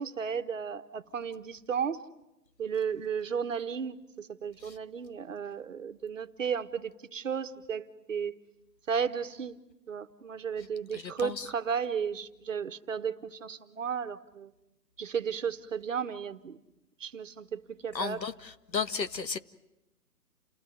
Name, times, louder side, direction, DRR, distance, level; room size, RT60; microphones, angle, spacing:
voice 1, 0.0-2.0 2.6-8.4 8.9-9.6 9.9-14.5 15.0-16.6 17.0-18.2, right 7 dB, 50° right, 11 dB, 1.6 m, -34 dB
voice 2, 10.9-11.5 17.9-19.4, left 5 dB, 90° left, 12 dB, 1.8 m, -34 dB
29.5 x 18.0 x 9.4 m, 0.92 s
hypercardioid pair, 160°, 49 cm